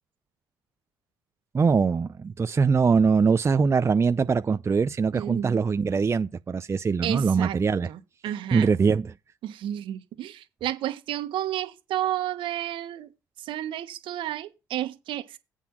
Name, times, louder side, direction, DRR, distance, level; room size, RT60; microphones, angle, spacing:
voice 1, 1.5-7.9 8.5-9.1, right 5 dB, 30° right, 0.6 m, -22 dB
voice 2, 5.1-5.6 7.0-7.6 7.9-8.7 9.4-13.1 13.4-15.4, right 12 dB, 65° right, 1.5 m, -31 dB
8.3 x 5.7 x 6.1 m
hypercardioid pair, 55°, 9 cm